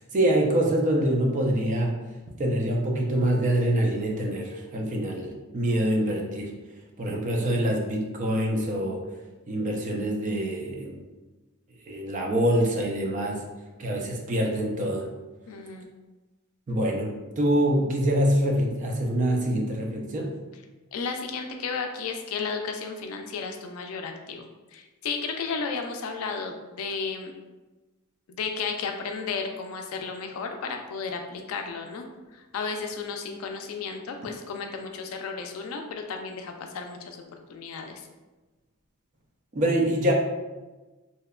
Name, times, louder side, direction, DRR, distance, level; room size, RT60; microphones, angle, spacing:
voice 1, 0.1-1.9 2.4-6.5 7.0-9.0 9.5-11.0 11.9-13.4 13.8-15.1 16.7-20.3 39.5-40.1, right 1 dB, 35° right, 0 dB, 0.4 m, -25 dB
voice 2, 15.5-15.9 20.9-27.3 28.3-32.0 32.3-38.1, left 5 dB, 80° left, 4 dB, 0.4 m, -33 dB
2.8 x 2.1 x 2.3 m, 1.2 s
head